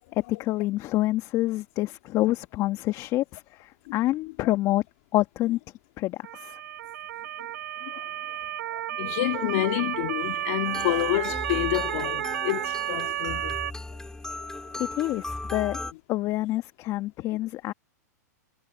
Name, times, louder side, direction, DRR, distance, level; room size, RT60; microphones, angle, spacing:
voice 1, 0.1-4.8 5.1-5.6 6.0-6.6 14.9-15.8 16.1-17.7, left 16 dB, 35° left, 1.6 m, -27 dB
Motor vehicle (road) / Siren, 6.2-13.7, right 12 dB, 70° right, 1.8 m, -32 dB
voice 2, 8.7-13.6 14.4-14.5, left 20 dB, 55° left, 2.3 m, -29 dB
sound 1, 10.7-15.9, left 2 dB, 5° left, 6.7 m, -37 dB
hypercardioid pair, 120°, 9 cm